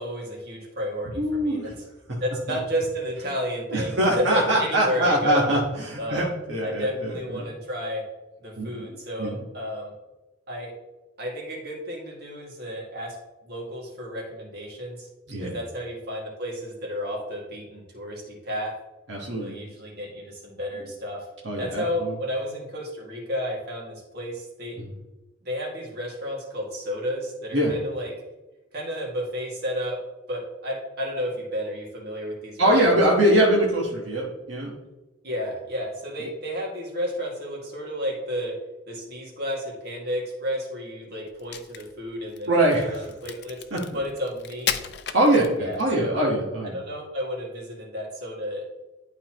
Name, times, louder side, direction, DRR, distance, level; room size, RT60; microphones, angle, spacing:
voice 1, 0.0-1.7 2.2-5.5 6.0-6.3 6.6-8.0 8.4-9.9 10.5-10.7 11.2-13.2 13.4-15.1 15.4-18.7 19.3-21.2 21.6-24.8 25.4-28.1 28.7-30.0 30.3-33.0 35.2-38.5 38.9-42.6 42.9-43.6 43.9-44.9 45.6-46.3 46.7-48.7, equal, 55° right, -2 dB, 2.2 m, -32 dB
voice 2, 1.2-1.7 2.5-2.6 3.7-7.5 8.6-9.3 15.3-15.5 19.1-19.6 21.4-22.1 27.5-27.7 32.6-34.7 42.5-43.0 43.7-43.8 45.1-46.8, right 1 dB, 80° right, -4 dB, 1.4 m, -23 dB
Crack, 41.3-45.9, left 9 dB, 60° left, 0.5 m, -34 dB
11.5 x 4.2 x 3.0 m, 1.1 s
head